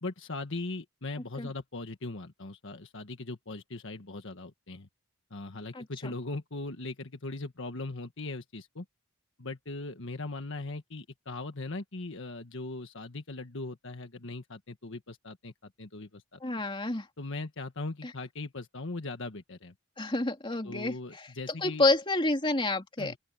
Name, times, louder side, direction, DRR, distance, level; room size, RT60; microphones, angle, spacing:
voice 1, 0.0-4.9 5.3-8.8 9.4-16.4 17.2-19.7 20.6-21.9 23.0-23.2, left 2 dB, 60° left, 1.6 m, -39 dB
voice 2, 5.7-6.1 16.4-17.1 20.0-21.3 21.6-23.1, left 2 dB, 25° left, 2.8 m, -29 dB
open air
head